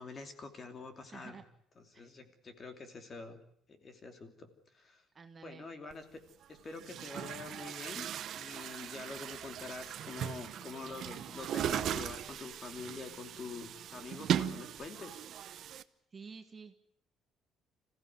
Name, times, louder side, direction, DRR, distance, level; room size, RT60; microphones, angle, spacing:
voice 1, 0.0-1.4 1.8-3.4 3.7-4.5 4.7-5.0 5.4-6.2 6.5-8.1 8.3-15.2, left 4 dB, 30° left, 6 dB, 2.8 m, -46 dB
voice 2, 1.1-1.4 1.9-2.1 5.1-5.7 16.1-16.7, right 5 dB, 25° right, 6 dB, 1.5 m, -50 dB
Chatter / Gurgling / Tap, 5.9-6.0 6.7-15.8, right 10 dB, 50° right, 0.9 m, -38 dB
26.5 x 15.5 x 9.5 m, 0.70 s
cardioid pair, 160°, 0 cm